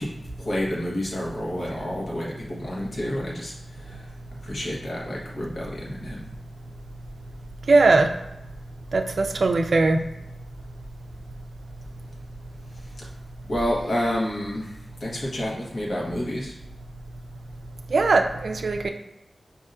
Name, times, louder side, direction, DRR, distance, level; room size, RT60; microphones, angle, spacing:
voice 1, 0.0-4.1 4.4-6.3 13.0-13.1 13.5-16.6, equal, 65° left, -4 dB, 1.1 m, -29 dB
voice 2, 7.7-8.1 8.9-10.0 17.9-18.9, right 3 dB, 70° right, 5 dB, 0.4 m, -19 dB
5.4 x 2.7 x 2.5 m, 0.88 s
wide cardioid pair, 100°, 0 cm